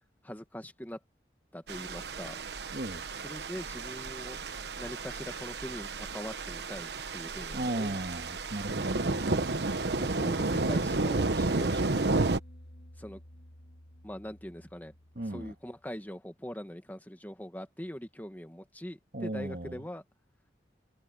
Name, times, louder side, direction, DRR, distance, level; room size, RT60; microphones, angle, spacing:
voice 1, 0.2-1.0 1.5-2.4 3.2-4.4 4.8-8.0 10.0-12.1 13.0-13.2 14.0-14.9 15.3-20.0, equal, 10° left, 1.5 m, -42 dB
sound 1, 1.7-12.4, right 3 dB, 75° right, 1.1 m, -32 dB
voice 2, 2.7-3.0 7.5-9.5 15.2-15.5 19.1-19.8, right 1 dB, 55° right, 1.8 m, -36 dB
sound 2, 11.6-15.9, equal, 65° left, 1.7 m, -52 dB
head